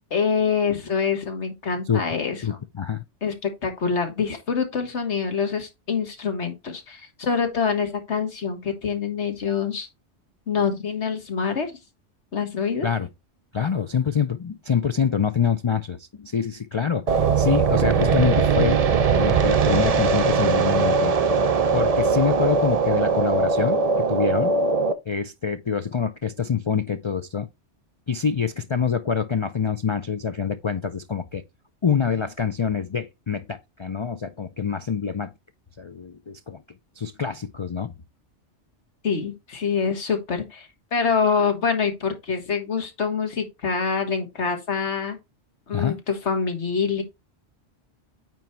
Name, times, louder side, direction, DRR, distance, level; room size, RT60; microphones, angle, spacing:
voice 1, 0.1-2.6 3.2-9.9 10.5-11.7 12.3-12.9 39.0-45.2 45.7-47.0, left 6 dB, 70° left, 1.8 m, -25 dB
voice 2, 2.4-3.0 12.8-13.1 13.5-18.8 19.2-21.1 21.7-24.5 25.1-27.5 28.1-31.4 31.8-35.3 35.8-36.6 37.0-37.9 45.7-46.0, left 6 dB, 50° left, 0.3 m, -25 dB
sound 1, 17.1-24.9, right 5 dB, 45° right, 0.5 m, -20 dB
9.2 x 3.1 x 4.4 m
omnidirectional pair, 1.2 m